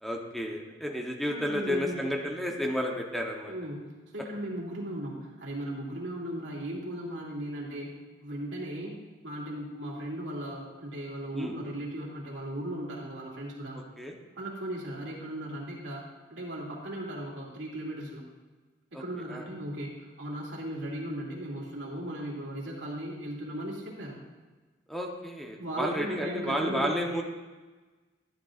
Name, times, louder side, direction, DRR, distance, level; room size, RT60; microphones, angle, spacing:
voice 1, 0.0-3.5 11.3-11.6 14.0-14.1 18.9-19.0 19.3-19.4 24.9-27.2, equal, ahead, 1 dB, 0.9 m, -32 dB
voice 2, 1.3-2.0 3.5-7.9 8.2-8.9 9.2-13.8 14.4-16.0 16.3-18.2 18.9-24.2 25.6-27.0, right 1 dB, 85° right, -3 dB, 2.4 m, -37 dB
12.0 x 11.0 x 2.5 m, 1.3 s
head